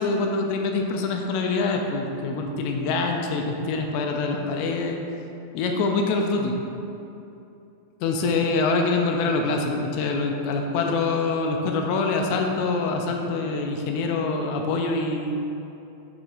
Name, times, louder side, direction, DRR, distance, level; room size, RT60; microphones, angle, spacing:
voice 1, 0.0-5.0 5.5-6.5 8.0-15.4, left 3 dB, 85° left, 2 dB, 2.6 m, -25 dB
11.0 x 3.9 x 2.5 m, 2.8 s
omnidirectional pair, 5.0 m